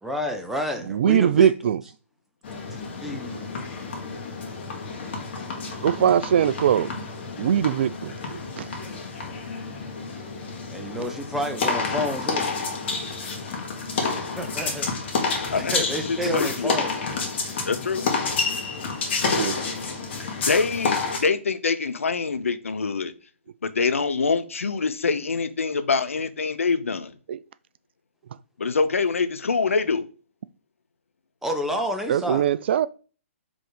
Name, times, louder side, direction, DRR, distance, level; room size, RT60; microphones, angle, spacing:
voice 1, 0.0-1.7 3.0-3.6 5.8-6.0 10.7-12.5 14.3-14.9 15.6-16.9 31.4-32.4, equal, 5° right, 1.0 m, -30 dB
voice 2, 0.9-1.8 5.8-6.9 7.4-8.7 10.9-11.1 19.3-19.6 27.3-27.4 32.1-32.9, right 9 dB, 55° right, 0.4 m, -21 dB
sound 1, 2.4-21.2, left 4 dB, 55° left, 1.9 m, -29 dB
voice 3, 15.5-16.8 17.7-18.1 20.5-23.1 23.6-27.1 28.6-30.1, left 4 dB, 80° left, 0.7 m, -25 dB
5.0 x 3.8 x 5.0 m
hypercardioid pair, 130°, 7 cm